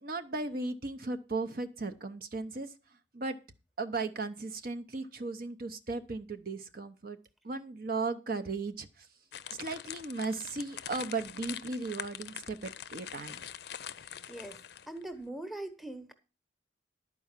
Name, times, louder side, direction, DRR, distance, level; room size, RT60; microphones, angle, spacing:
voice 1, 0.0-2.7 3.1-3.4 3.8-7.2 7.4-8.9 9.6-13.4, right 3 dB, 50° right, 8 dB, 0.7 m, -36 dB
sound 1, 9.3-15.0, left 9 dB, 55° left, 0.5 m, -44 dB
voice 2, 14.0-14.6 14.9-16.1, right 1 dB, ahead, 8 dB, 1.0 m, -42 dB
11.5 x 4.7 x 7.2 m, 0.31 s
head